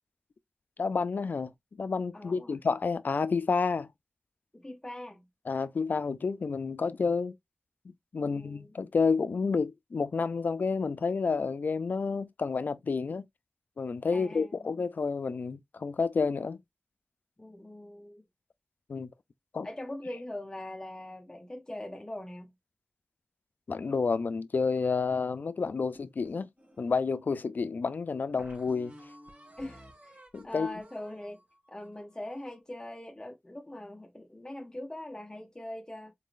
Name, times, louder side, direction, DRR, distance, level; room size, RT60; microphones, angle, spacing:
voice 1, 0.8-1.5 1.8-3.9 5.5-7.4 8.1-13.3 13.8-16.6 18.9-19.1 19.5-19.7 23.7-26.5 26.8-28.9 30.3-30.8, left 4 dB, 70° left, 0.5 m, -30 dB
voice 2, 2.1-2.6 4.5-5.3 8.2-8.7 14.1-14.7 17.4-18.2 19.6-22.5 29.6-31.4 31.7-36.1, left 1 dB, 20° left, 0.8 m, -42 dB
sound 1, 25.6-27.2 27.8-27.9 28.4-32.6, equal, 55° right, 2.1 m, -54 dB
4.0 x 3.8 x 2.5 m
wide cardioid pair, 75°, 3 cm